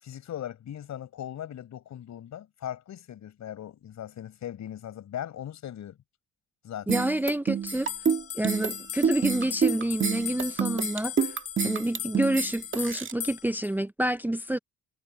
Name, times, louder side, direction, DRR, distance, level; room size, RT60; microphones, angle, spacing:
voice 1, 0.0-6.0 6.6-7.0, left 10 dB, 70° left, 5.1 m, -39 dB
voice 2, 6.9-7.9 8.3-11.3 11.6-14.6, right 1 dB, 5° right, 0.6 m, -28 dB
sound 1, 6.9-13.1, right 7 dB, 40° right, 2.0 m, -28 dB
sound 2, 7.7-13.7, left 10 dB, 50° left, 1.3 m, -37 dB
cardioid pair, 90°, 30 cm